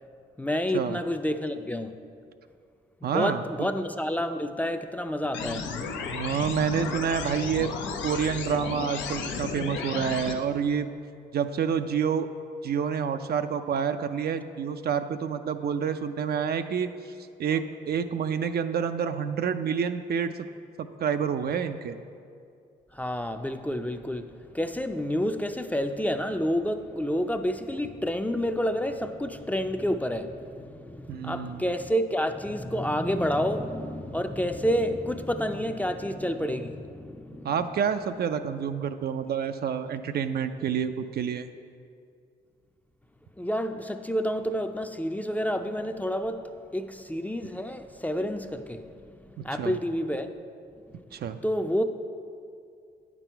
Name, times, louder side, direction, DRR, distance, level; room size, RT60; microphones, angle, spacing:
voice 1, 0.4-2.0 3.0-5.7 17.5-17.6 22.9-37.5 43.4-46.4 46.7-50.3 50.9-51.0 51.4-51.8, equal, 10° left, 7 dB, 0.5 m, -29 dB
voice 2, 3.0-3.4 6.1-7.7 8.0-10.9 11.3-12.3 12.6-16.9 17.4-20.3 20.8-22.0 31.1-31.6 37.4-41.5 49.4-49.7 51.1-51.4, right 7 dB, 60° right, 9 dB, 0.4 m, -28 dB
sound 1, 5.3-10.3, left 5 dB, 85° left, 0.6 m, -33 dB
9.0 x 6.1 x 4.5 m, 2.4 s
supercardioid pair, 60°, 19 cm